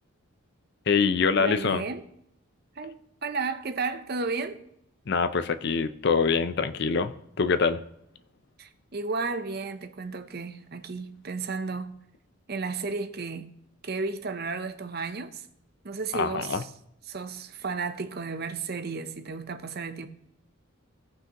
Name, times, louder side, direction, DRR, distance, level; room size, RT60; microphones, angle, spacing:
voice 1, 0.9-1.8 5.1-7.8 16.1-16.6, left 5 dB, 50° left, 0.5 m, -25 dB
voice 2, 1.4-2.0 2.8-4.6 8.6-12.0 12.5-13.5 13.8-15.5 15.8-16.7 17.1-20.1, right 4 dB, 45° right, 0.7 m, -33 dB
17.0 x 5.8 x 3.0 m
head